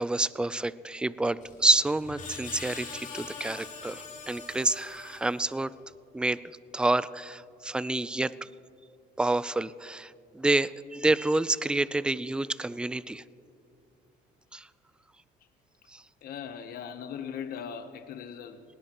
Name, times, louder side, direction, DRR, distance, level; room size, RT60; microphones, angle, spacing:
voice 1, 0.0-5.7 6.1-6.4 6.7-8.5 9.2-13.2 14.5-14.7 15.9-16.0, right 2 dB, 5° right, 0.3 m, -28 dB
Screech, 1.4-5.7, left 5 dB, 45° left, 2.9 m, -43 dB
voice 2, 16.2-18.6, left 7 dB, 60° left, 0.9 m, -39 dB
19.5 x 18.0 x 3.0 m
cardioid pair, 110°, 17 cm